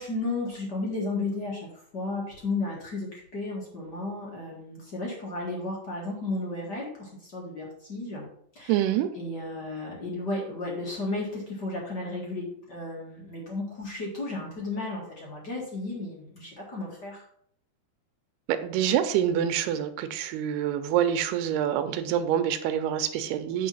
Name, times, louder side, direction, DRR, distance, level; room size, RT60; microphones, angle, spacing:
voice 1, 0.0-1.7 1.9-8.3 8.6-8.8 9.1-17.2, left 2 dB, 35° left, -3 dB, 1.8 m, -33 dB
voice 2, 8.7-9.1 18.5-23.7, right 10 dB, 90° right, 10 dB, 2.8 m, -26 dB
8.5 x 4.5 x 5.6 m, 0.65 s
omnidirectional pair, 4.5 m